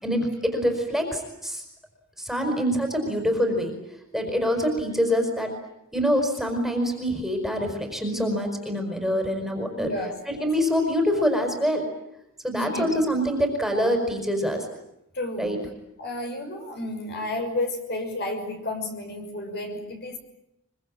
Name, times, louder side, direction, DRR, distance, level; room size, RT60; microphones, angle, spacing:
voice 1, 0.0-1.6 2.2-3.7 4.1-5.5 5.9-9.9 10.3-11.8 12.4-14.6 15.4-15.6, equal, ahead, 3 dB, 5.0 m, -25 dB
voice 2, 9.7-10.5 12.5-13.0 15.1-15.6 16.0-20.2, left 1 dB, 50° left, 4 dB, 6.2 m, -32 dB
25.0 x 24.0 x 9.0 m, 0.85 s
head